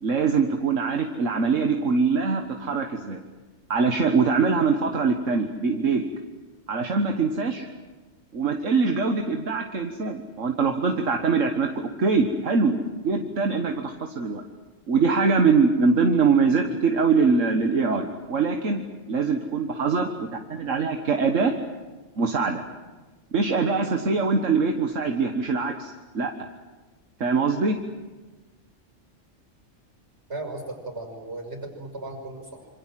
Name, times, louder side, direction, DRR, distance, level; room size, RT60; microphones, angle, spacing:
voice 1, 0.0-3.2 3.7-6.0 6.7-7.7 8.3-12.8 13.0-14.4 14.9-21.5 22.2-22.6 23.3-26.3 27.2-27.8, right 4 dB, 80° right, 4 dB, 1.9 m, -23 dB
voice 2, 30.3-32.7, right 2 dB, 55° right, 4 dB, 6.2 m, -36 dB
27.0 x 26.0 x 7.7 m, 1.3 s
omnidirectional pair, 1.3 m